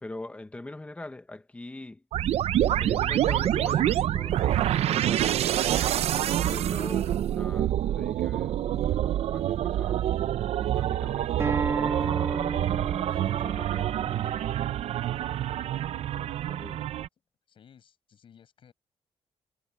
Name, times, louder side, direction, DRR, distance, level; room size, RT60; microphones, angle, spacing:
voice 1, 0.0-2.0 2.6-5.4 6.1-10.0 10.6-12.6 13.1-14.3 16.1-16.9, left 2 dB, 10° left, 1.0 m, -43 dB
sound 1, 2.1-17.1, right 12 dB, 70° right, 0.5 m, -27 dB
Acoustic guitar, 11.4-16.6, right 4 dB, 25° right, 1.8 m, -34 dB
voice 2, 15.2-15.8 17.5-18.7, left 8 dB, 50° left, 7.7 m, -58 dB
wide cardioid pair, 170°, 11 cm